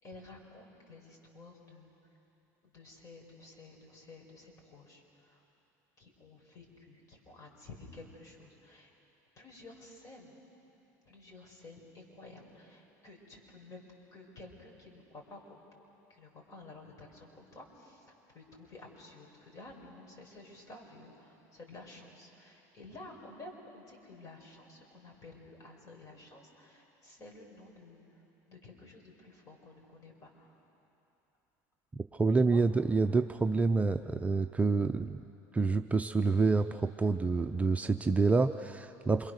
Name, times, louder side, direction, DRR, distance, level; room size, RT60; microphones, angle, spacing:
voice 1, 0.0-1.9 2.7-5.4 6.0-8.9 9.4-10.3 11.1-13.8 14.1-15.5 16.1-28.0 28.5-30.5 32.4-32.6, left 2 dB, 40° left, 1 dB, 5.5 m, -52 dB
voice 2, 32.2-35.2 35.5-39.3, right 3 dB, 15° right, 6 dB, 0.6 m, -27 dB
27.0 x 23.0 x 6.5 m, 2.9 s
supercardioid pair, 105°, 9 cm